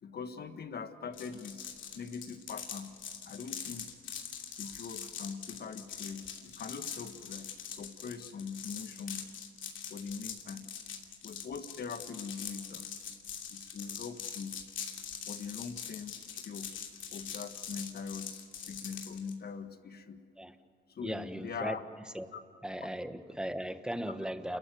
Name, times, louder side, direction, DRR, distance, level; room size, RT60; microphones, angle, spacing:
voice 1, 0.0-1.7 1.9-3.0 3.3-3.9 4.6-9.3 9.9-10.7 11.2-13.0 13.5-14.6 15.3-16.7 17.1-20.2 20.9-21.8 22.3-22.4, left 5 dB, 50° left, 9 dB, 1.7 m, -42 dB
sound 1, 1.1-19.3, left 8 dB, 75° left, 2.8 m, -43 dB
voice 2, 21.0-21.7 22.1-22.2 22.6-24.6, equal, 5° right, 9 dB, 1.4 m, -37 dB
29.5 x 14.5 x 9.3 m, 2.1 s
cardioid pair, 90°, 20 cm